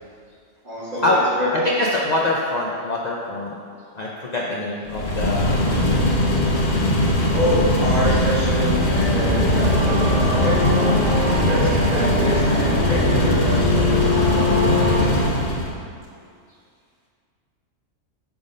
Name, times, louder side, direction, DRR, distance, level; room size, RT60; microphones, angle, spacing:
voice 1, 0.6-1.1 1.4-1.5 7.3-11.1 11.5-14.3, equal, 40° right, -8 dB, 1.4 m, -26 dB
voice 2, 1.6-3.6 3.9-6.1, left 2 dB, 70° left, -3 dB, 0.4 m, -24 dB
sound 1, 4.9-15.7, left 1 dB, 50° left, 0.8 m, -20 dB
sound 2, 8.2-15.1, left 2 dB, 75° right, 1.4 m, -25 dB
5.2 x 3.6 x 5.0 m, 2.3 s
omnidirectional pair, 1.4 m